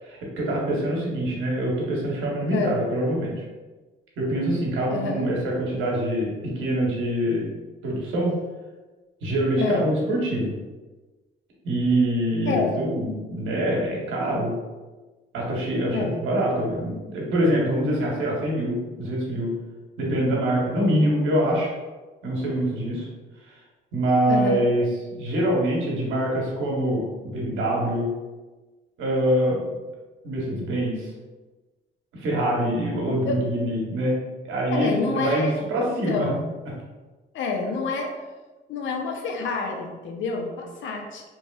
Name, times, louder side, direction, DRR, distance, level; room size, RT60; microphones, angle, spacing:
voice 1, 0.0-3.4 4.2-7.5 7.8-8.3 9.2-10.5 11.6-14.5 15.3-19.5 20.0-21.7 22.2-23.1 23.4-23.5 23.9-24.9 25.2-28.1 29.0-29.6 30.2-31.1 32.1-34.2 34.4-36.3, right 1 dB, 85° right, -3 dB, 0.9 m, -24 dB
voice 2, 4.9-5.3 9.6-9.9 12.5-12.8 15.9-16.2 24.3-24.7 33.1-33.4 34.7-35.5 36.1-36.4 37.3-38.1 38.7-41.2, left 4 dB, 75° left, 2 dB, 0.5 m, -27 dB
2.9 x 2.9 x 2.2 m, 1.2 s
cardioid pair, 90°, 20 cm